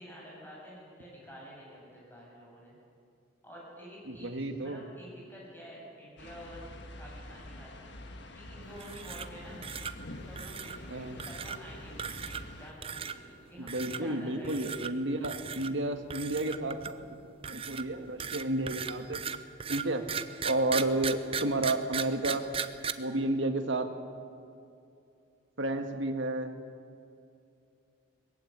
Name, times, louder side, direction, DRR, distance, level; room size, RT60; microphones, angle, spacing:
voice 1, 0.0-2.7 3.4-6.6 7.0-7.7 8.3-9.6 10.2-14.7, equal, 10° left, -5 dB, 7.7 m, -49 dB
voice 2, 4.1-4.8 10.9-11.2 13.6-16.8 17.4-19.2 19.7-20.0 20.4-22.5 23.0-23.9 25.6-26.5, right 2 dB, 65° right, 6 dB, 1.7 m, -31 dB
sound 1, 6.2-12.7, left 1 dB, 55° left, 1.6 m, -46 dB
sound 2, 8.8-9.4 9.6-9.9 10.3-10.8 11.2-11.6 12.0-12.5 12.8-13.2 13.7-14.0 14.4-14.9 15.2-15.7 16.1-17.0 17.4-22.9, right 7 dB, 25° right, 0.6 m, -37 dB
21.0 x 15.5 x 9.3 m, 2.5 s
head